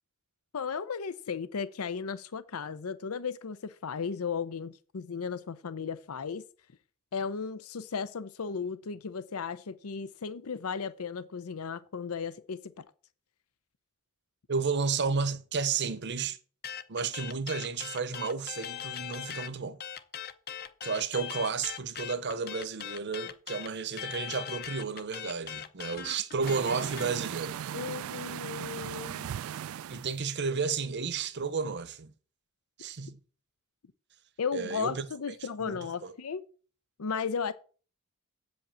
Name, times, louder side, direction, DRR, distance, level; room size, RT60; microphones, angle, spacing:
voice 1, 0.5-6.4 7.1-12.8 27.7-29.3 34.4-36.4 37.0-37.5, left 6 dB, 85° left, 0.6 m, -35 dB
voice 2, 14.5-16.4 16.9-19.8 20.8-27.6 29.9-32.1 32.8-33.2 34.5-35.1 35.6-36.1, right 5 dB, 55° right, 0.9 m, -32 dB
sound 1, 16.6-19.5 19.8-27.1, left 9 dB, 45° left, 0.7 m, -40 dB
sound 2, 26.4-30.1, right 9 dB, 70° right, 0.3 m, -38 dB
8.1 x 5.3 x 7.3 m
head